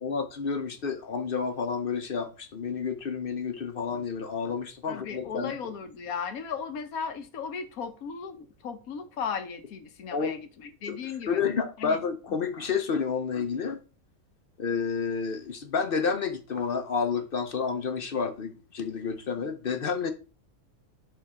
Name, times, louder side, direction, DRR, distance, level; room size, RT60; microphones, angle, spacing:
voice 1, 0.0-5.6 10.1-10.4 10.9-11.0 11.3-13.8 14.6-20.1, left 5 dB, 50° left, 0.8 m, -30 dB
voice 2, 4.9-11.4 11.8-12.0, left 6 dB, 85° left, 1.4 m, -36 dB
11.0 x 3.7 x 3.6 m
omnidirectional pair, 1.5 m